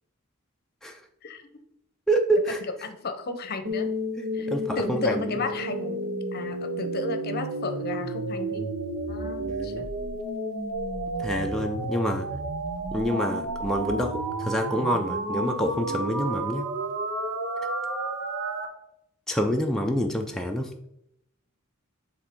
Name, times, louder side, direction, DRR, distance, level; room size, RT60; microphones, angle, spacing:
voice 1, 2.1-2.6 4.2-5.3 9.4-9.9 11.2-12.3 12.9-16.7 19.3-20.7, equal, ahead, 1 dB, 0.4 m, -27 dB
voice 2, 2.6-3.9 4.3-6.0 6.3-8.7 9.1-9.9, left 3 dB, 45° left, 8 dB, 0.7 m, -33 dB
sound 1, 3.7-18.7, right 1 dB, 85° right, 1.0 m, -31 dB
7.2 x 3.5 x 4.3 m, 0.78 s
head